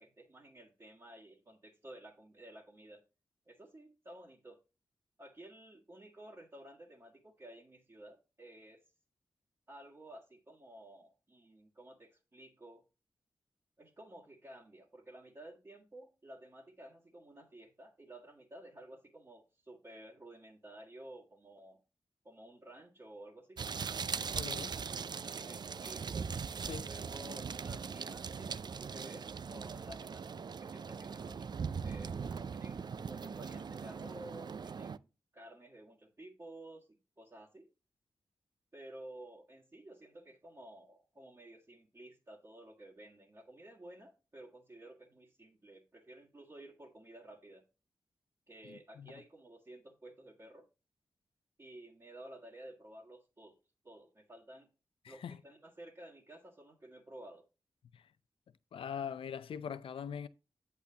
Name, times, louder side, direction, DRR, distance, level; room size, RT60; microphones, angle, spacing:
voice 1, 0.0-3.0 3.5-4.6 5.2-8.8 9.7-12.8 13.8-21.8 22.2-23.6 25.1-26.2 26.9-37.7 38.7-47.6 48.5-50.7 51.6-53.6 53.8-54.7 55.1-57.4, right 1 dB, 35° right, 1.9 m, -53 dB
sound 1, 23.6-35.0, right 6 dB, 55° right, 0.4 m, -40 dB
voice 2, 24.3-24.8 26.6-26.9 48.6-49.1 55.0-55.4 57.9-58.1 58.7-60.3, left 7 dB, 90° left, 0.5 m, -42 dB
8.3 x 8.2 x 2.8 m
cardioid pair, 55°, 9 cm